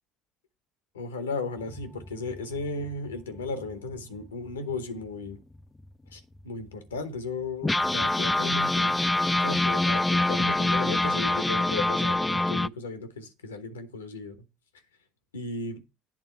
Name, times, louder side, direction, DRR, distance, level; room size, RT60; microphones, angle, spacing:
voice 1, 0.9-5.4 6.1-9.0 9.4-14.4 15.3-15.8, left 3 dB, 85° left, 1.0 m, -35 dB
sound 1, 1.6-4.8 5.3-5.4 5.6-5.8 6.4-6.5 7.6-12.7, left 2 dB, 15° left, 0.3 m, -25 dB
8.7 x 3.6 x 6.6 m
hypercardioid pair, 60°, 0 cm